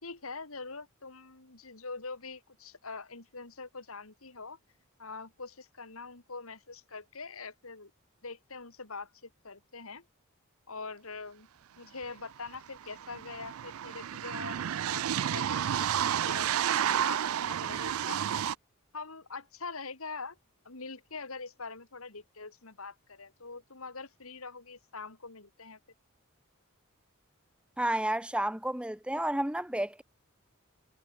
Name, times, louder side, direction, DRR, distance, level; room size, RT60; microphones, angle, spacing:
voice 1, 0.0-4.6 5.0-7.9 8.2-10.0 10.7-11.5 11.8-16.5 16.7-18.4 18.9-20.4 20.6-25.8, left 4 dB, 70° left, 2.7 m, -44 dB
sound 1, 12.0-12.1 12.3-18.5, right 10 dB, 70° right, 0.4 m, -31 dB
voice 2, 27.8-30.0, right 1 dB, 5° right, 1.0 m, -31 dB
head